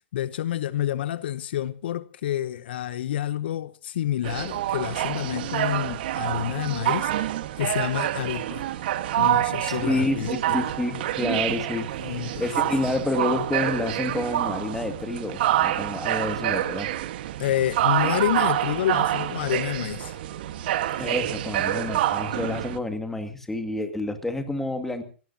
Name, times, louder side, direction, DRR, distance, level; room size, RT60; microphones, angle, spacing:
voice 1, 0.1-7.1 7.6-8.7 9.2-10.6 12.0-12.4 17.4-20.1, left 12 dB, 60° left, 0.8 m, -28 dB
sound 1, 4.2-22.8, right 13 dB, 55° right, 1.5 m, -27 dB
voice 2, 9.7-16.9 20.9-25.0, left 2 dB, 5° left, 2.2 m, -29 dB
25.0 x 18.0 x 2.9 m
hypercardioid pair, 140°, 6 cm